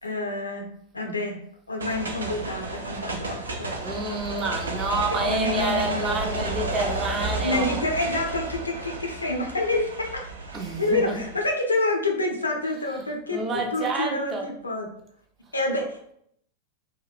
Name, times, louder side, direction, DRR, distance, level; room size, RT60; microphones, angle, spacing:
voice 1, 0.0-0.7 0.9-1.4 1.7-3.7 5.1-6.5 7.4-10.2 10.6-14.9 15.5-16.1, left 2 dB, 80° left, 2 dB, 0.5 m, -28 dB
sound 1, 1.8-11.5, right 2 dB, 70° right, 0.4 m, -32 dB
voice 2, 3.8-7.8 10.5-11.1 13.3-14.5, right 2 dB, 25° right, 2 dB, 0.5 m, -28 dB
2.8 x 2.1 x 2.4 m, 0.67 s
figure-of-eight pair, 90°, 0 cm